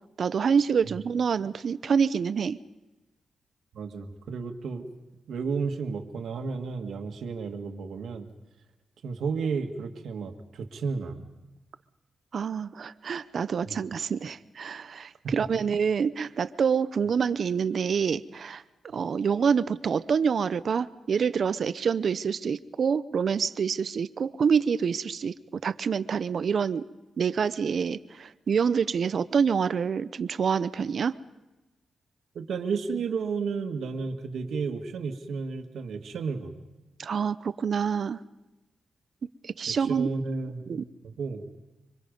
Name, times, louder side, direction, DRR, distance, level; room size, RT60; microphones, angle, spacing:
voice 1, 0.2-2.6 12.3-18.6 18.9-25.3 25.6-26.8 27.2-31.2 37.0-38.2 39.4-40.1 40.7-40.8, right 6 dB, 55° right, 15 dB, 0.7 m, -26 dB
voice 2, 3.7-4.9 5.3-8.3 9.0-11.2 13.6-13.8 15.2-15.3 18.9-19.0 32.4-36.5 39.7-40.6 41.0-41.5, right 5 dB, 80° right, 5 dB, 1.8 m, -32 dB
25.5 x 25.0 x 5.3 m, 1.0 s
wide cardioid pair, 125°, 0 cm